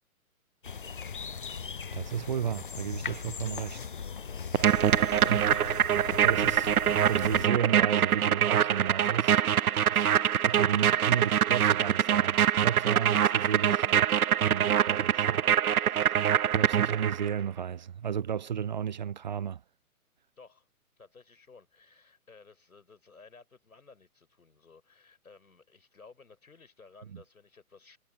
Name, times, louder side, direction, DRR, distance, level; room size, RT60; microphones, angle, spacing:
sound 1, 0.6-7.5, left 6 dB, 40° left, 0.4 m, -39 dB
voice 1, 1.9-3.8 5.3-5.5 6.2-6.7 7.0-9.4 9.9-10.1 10.4-16.2 16.5-19.6 27.1-27.2, right 8 dB, 30° right, 0.6 m, -33 dB
sound 2, 4.5-17.3, right 9 dB, 75° right, 0.5 m, -24 dB
voice 2, 20.4-20.7 21.0-28.0, left 4 dB, 70° left, 5.5 m, -56 dB
figure-of-eight pair, 130°, 44 cm